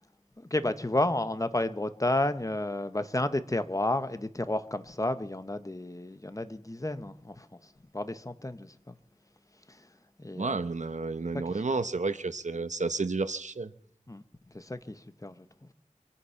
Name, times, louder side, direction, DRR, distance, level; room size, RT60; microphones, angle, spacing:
voice 1, 0.4-8.9 9.7-9.9 10.2-10.6 11.5-11.6 14.1-14.2 14.5-15.7, left 1 dB, 25° left, 1.1 m, -32 dB
voice 2, 10.3-13.7, right 3 dB, 65° right, 0.9 m, -31 dB
25.0 x 9.9 x 5.8 m
wide cardioid pair, 60°, 13 cm